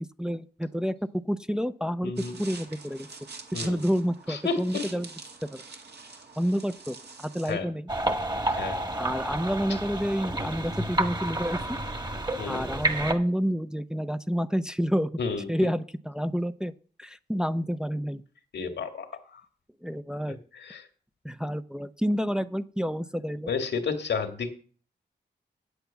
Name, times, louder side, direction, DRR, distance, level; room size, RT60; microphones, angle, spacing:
voice 1, 0.2-2.1 2.4-3.1 3.5-5.1 5.4-5.6 6.4-7.9 9.0-11.6 12.5-15.1 15.5-16.7 17.0-18.2 19.8-20.4 21.2-23.5, equal, 5° right, 10 dB, 0.6 m, -29 dB
voice 2, 2.0-2.4 3.5-3.8 4.3-5.0 7.5-7.7 8.5-8.8 12.4-12.7 15.2-15.5 18.5-19.4 20.3-20.9 23.5-24.5, left 5 dB, 85° left, 6 dB, 1.9 m, -32 dB
sound 1, 2.2-7.5, right 4 dB, 70° right, 2.1 m, -44 dB
sound 2, 7.9-13.1, right 2 dB, 25° right, 1.6 m, -30 dB
8.3 x 8.1 x 7.0 m, 0.43 s
cardioid pair, 60°, 18 cm